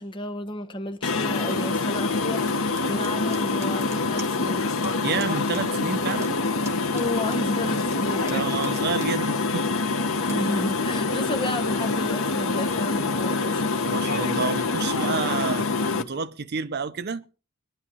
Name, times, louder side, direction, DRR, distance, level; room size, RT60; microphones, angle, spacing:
voice 1, 0.0-4.7 6.9-8.5 10.3-13.6, left 1 dB, 25° left, 1.1 m, -32 dB
sound 1, 1.0-16.0, left 3 dB, 85° left, 1.1 m, -25 dB
sound 2, 2.8-4.5 4.8-4.9 5.2-5.6 5.9-7.9 8.3-9.1 9.6-9.7 10.2-10.4, right 2 dB, 15° right, 1.8 m, -44 dB
voice 2, 5.0-6.4 8.3-9.7 13.8-17.2, right 5 dB, 50° right, 0.6 m, -30 dB
22.5 x 11.0 x 3.0 m
head